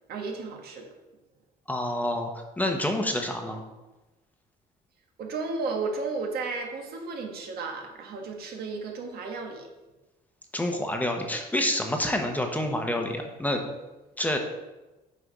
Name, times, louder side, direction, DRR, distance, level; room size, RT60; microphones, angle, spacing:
voice 1, 0.1-0.9 5.2-9.7, right 4 dB, 65° right, 2 dB, 1.5 m, -33 dB
voice 2, 1.7-2.3 2.6-3.6 10.5-13.6 14.2-14.4, left 1 dB, 10° left, 3 dB, 1.0 m, -28 dB
8.1 x 4.5 x 5.2 m, 1.1 s
cardioid pair, 110°, 17 cm